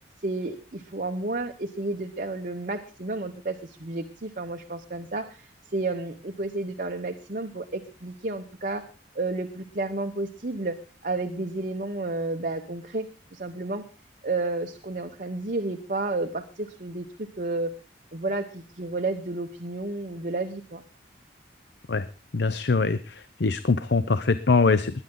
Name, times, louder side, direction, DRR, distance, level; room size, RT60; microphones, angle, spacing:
voice 1, 0.2-8.8 9.1-10.8 11.0-13.8 14.2-17.7 18.1-20.8, right 2 dB, 45° right, 5 dB, 1.0 m, -31 dB
voice 2, 22.3-24.9, left 4 dB, 60° left, 13 dB, 0.7 m, -23 dB
21.5 x 9.9 x 3.8 m, 0.33 s
head